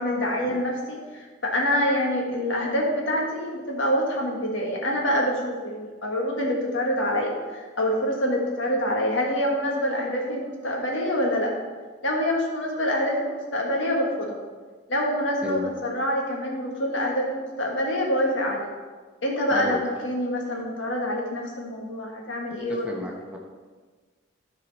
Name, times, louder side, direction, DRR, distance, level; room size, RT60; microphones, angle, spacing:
voice 1, 0.0-11.5 12.0-14.4 14.9-18.7 19.2-23.0, equal, 75° left, -1 dB, 1.7 m, -26 dB
voice 2, 22.7-23.4, left 2 dB, 5° right, -1 dB, 0.9 m, -33 dB
13.0 x 4.7 x 4.1 m, 1.4 s
head